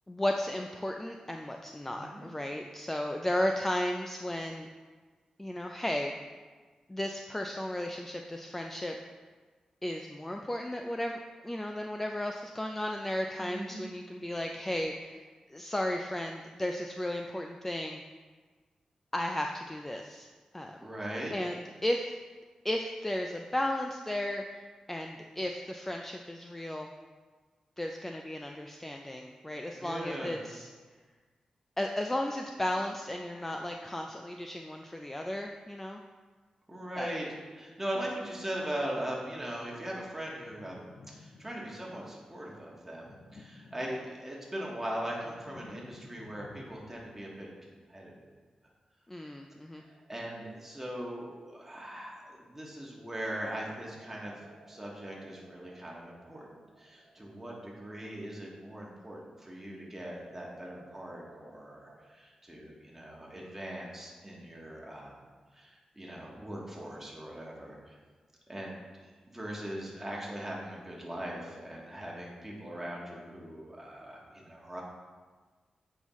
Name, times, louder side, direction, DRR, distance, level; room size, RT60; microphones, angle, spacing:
voice 1, 0.1-4.7 5.4-6.3 6.9-9.0 9.8-15.2 15.5-18.0 19.1-20.3 20.5-20.8 21.3-22.1 22.6-26.9 27.8-30.7 31.8-36.0 37.0-37.1 49.1-49.8, left 1 dB, 15° left, 3 dB, 0.4 m, -34 dB
voice 2, 1.9-2.2 13.4-13.8 20.8-21.3 29.7-30.4 36.7-37.3 37.5-48.2 50.1-54.3 54.7-65.1 65.5-67.9 68.5-74.8, right 1 dB, 15° right, -3 dB, 1.6 m, -40 dB
sound 1, 40.4-42.0 42.9-44.4 44.8-47.2, left 3 dB, 75° left, 0.5 m, -54 dB
sound 2, 49.8-52.5 53.4-59.2 60.2-62.0, right 3 dB, 90° right, 1.3 m, -59 dB
7.9 x 5.5 x 3.1 m, 1.4 s
cardioid pair, 85°, 2 cm